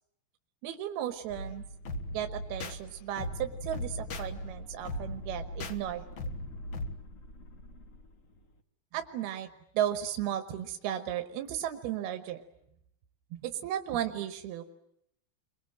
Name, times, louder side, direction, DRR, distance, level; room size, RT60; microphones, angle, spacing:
voice 1, 0.6-1.6 2.1-6.1 8.9-9.5 9.7-12.4 13.3-14.6, right 11 dB, 85° right, 7 dB, 3.2 m, -34 dB
sound 1, 1.3-7.0, left 1 dB, 75° left, 1.1 m, -39 dB
sound 2, 3.7-8.6, equal, 45° left, 1.0 m, -51 dB
29.5 x 23.5 x 7.7 m, 0.77 s
omnidirectional pair, 4.4 m